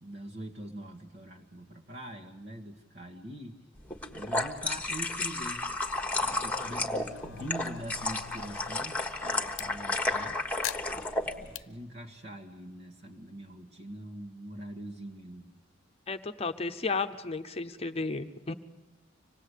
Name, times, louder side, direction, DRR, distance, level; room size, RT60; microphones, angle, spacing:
voice 1, 0.0-3.6 4.1-5.7 6.1-10.4 11.4-15.5, right 1 dB, 60° right, 1 dB, 1.9 m, -43 dB
sound 1, 3.9-11.3, left 2 dB, 10° left, 1.4 m, -32 dB
sound 2, 6.3-9.7 10.6-11.6, left 9 dB, 80° left, 0.7 m, -43 dB
voice 2, 16.1-18.5, left 4 dB, 30° left, 8 dB, 0.8 m, -33 dB
25.5 x 18.5 x 8.3 m, 1.2 s
head